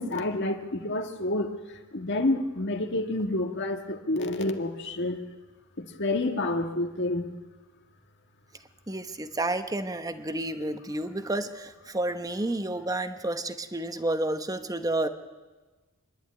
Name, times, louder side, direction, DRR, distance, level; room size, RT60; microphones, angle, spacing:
voice 1, 0.0-5.2 5.8-7.3, left 2 dB, 55° left, 6 dB, 1.7 m, -29 dB
voice 2, 8.9-15.1, right 2 dB, 15° right, 9 dB, 1.0 m, -30 dB
25.5 x 11.5 x 9.5 m, 1.3 s
head